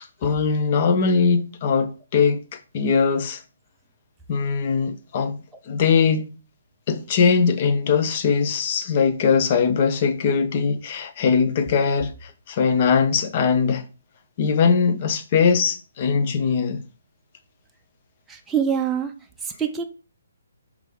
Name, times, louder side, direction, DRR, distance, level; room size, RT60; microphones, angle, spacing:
voice 1, 0.2-3.4 4.3-5.4 5.7-6.3 6.9-13.8 14.4-16.8, left 5 dB, 40° left, 0.9 m, -21 dB
voice 2, 18.3-19.1 19.4-19.8, right 8 dB, 10° right, 0.7 m, -24 dB
5.5 x 4.9 x 3.7 m
hypercardioid pair, 145°, 0 cm